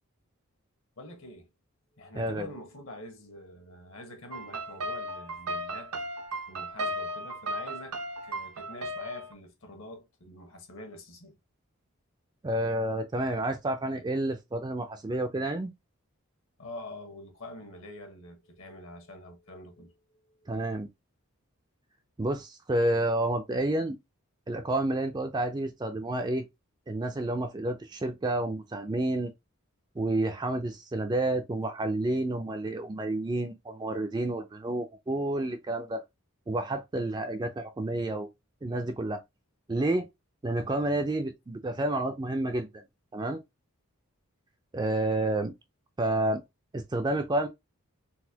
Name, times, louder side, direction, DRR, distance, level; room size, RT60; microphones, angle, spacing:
voice 1, 1.0-1.5 1.9-5.9 6.5-11.3 16.6-19.9 20.2-20.6 40.6-41.0, left 1 dB, 60° left, 1.1 m, -45 dB
voice 2, 2.1-2.5 12.4-15.7 20.5-20.9 22.2-24.0 24.5-26.5 26.9-29.3 30.0-36.0 36.5-38.3 38.6-39.2 39.7-40.1 40.4-42.8 43.1-43.4 44.7-45.5 46.0-46.4 46.7-47.5, right 1 dB, 20° right, 0.4 m, -30 dB
sound 1, 4.3-9.3, right 1 dB, 85° right, 0.7 m, -36 dB
4.0 x 2.2 x 2.8 m
head